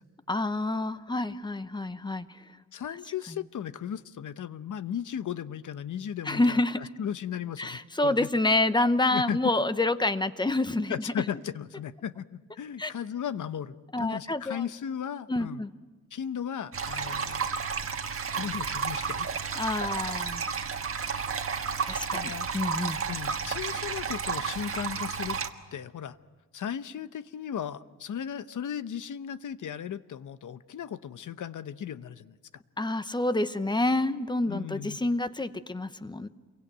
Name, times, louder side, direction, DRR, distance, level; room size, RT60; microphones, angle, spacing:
voice 1, 0.3-2.4 6.2-6.8 7.6-10.9 12.8-12.9 13.9-14.6 15.3-15.7 19.5-20.5 21.8-23.0 32.8-36.3, left 2 dB, 15° left, 12 dB, 0.8 m, -28 dB
voice 2, 2.7-8.3 9.1-9.4 10.9-12.3 12.6-15.6 16.1-17.5 18.3-19.3 22.1-22.5 23.1-25.4 25.7-26.2 26.5-32.3 34.5-35.0, left 9 dB, 70° left, 13 dB, 0.9 m, -36 dB
sound 1, 16.7-25.5, right 6 dB, 45° right, 1.5 m, -32 dB
28.0 x 23.5 x 9.1 m, 1.3 s
wide cardioid pair, 155°, 32 cm